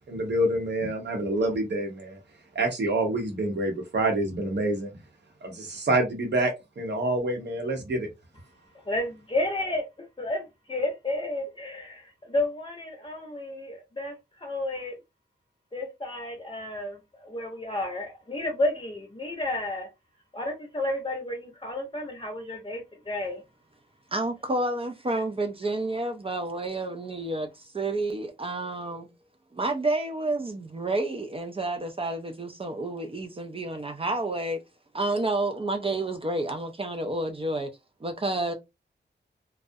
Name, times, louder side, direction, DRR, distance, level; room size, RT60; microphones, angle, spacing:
voice 1, 0.1-2.2 2.5-4.9 5.4-8.1, right 1 dB, 65° right, 0.8 m, -27 dB
voice 2, 8.8-14.1 14.4-14.9 15.7-19.9 20.3-23.4, left 1 dB, 25° left, 0.7 m, -31 dB
voice 3, 24.1-29.1 29.5-34.6 34.9-37.7 38.0-38.5, right 2 dB, 30° right, 0.4 m, -30 dB
2.3 x 2.0 x 2.6 m
wide cardioid pair, 110°, 19 cm